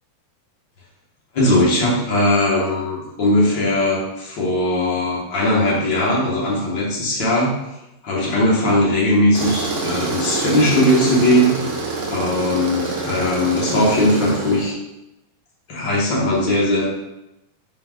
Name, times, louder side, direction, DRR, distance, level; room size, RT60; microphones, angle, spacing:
voice 1, 1.3-7.5 8.0-11.5 12.1-14.7 15.7-16.8, left 1 dB, 60° left, -5 dB, 1.1 m, -19 dB
Tools, 9.3-14.7, right 3 dB, 65° right, 1.5 m, -26 dB
8.6 x 4.8 x 2.5 m, 0.92 s
omnidirectional pair, 4.3 m